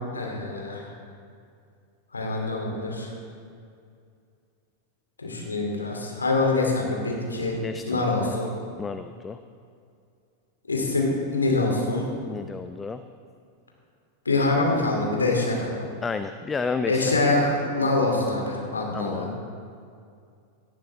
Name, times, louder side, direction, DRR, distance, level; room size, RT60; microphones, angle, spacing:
voice 1, 0.1-0.8 2.1-3.1 5.2-7.6 7.8-8.5 10.7-12.0 14.2-15.8 16.9-19.3, left 2 dB, 75° left, 0 dB, 2.8 m, -25 dB
voice 2, 7.6-8.3 8.8-9.4 12.3-13.0 16.0-17.2 18.9-19.3, left 4 dB, 15° left, 10 dB, 0.5 m, -31 dB
18.0 x 12.0 x 3.5 m, 2.4 s
figure-of-eight pair, 90°, 0 cm